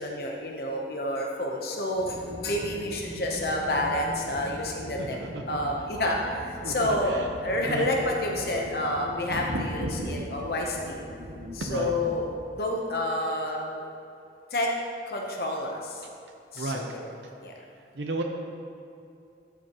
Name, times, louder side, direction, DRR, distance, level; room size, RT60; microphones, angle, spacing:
voice 1, 0.0-5.2 5.5-11.0 11.5-12.3 12.5-13.8 14.5-14.7 15.1-16.0 16.5-17.1 17.4-17.5, left 1 dB, 60° left, 0 dB, 0.9 m, -29 dB
sound 1, 1.9-12.2, equal, 65° right, 1.4 m, -40 dB
voice 2, 5.0-5.6 6.6-7.3 7.6-7.9 9.3-10.3 11.6-11.9 16.6-16.9 17.9-18.2, right 2 dB, 90° right, 2 dB, 0.7 m, -33 dB
13.5 x 6.9 x 3.0 m, 2.5 s
head